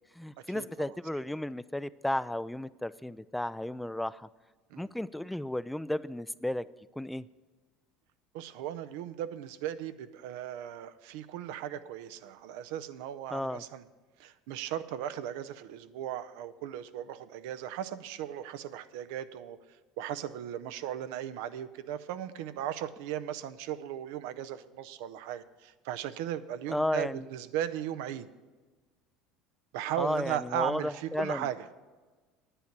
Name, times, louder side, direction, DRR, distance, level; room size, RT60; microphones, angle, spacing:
voice 1, 0.0-4.3 4.8-6.7 7.0-7.3 13.3-13.6 26.7-27.3 30.0-31.5, left 1 dB, 5° left, 16 dB, 0.3 m, -33 dB
voice 2, 0.5-0.9 4.7-4.9 8.3-13.8 14.2-19.6 20.0-28.3 29.7-31.6, right 11 dB, 75° right, 12 dB, 0.5 m, -37 dB
9.9 x 9.1 x 5.9 m, 1.3 s
hypercardioid pair, 80°, 0 cm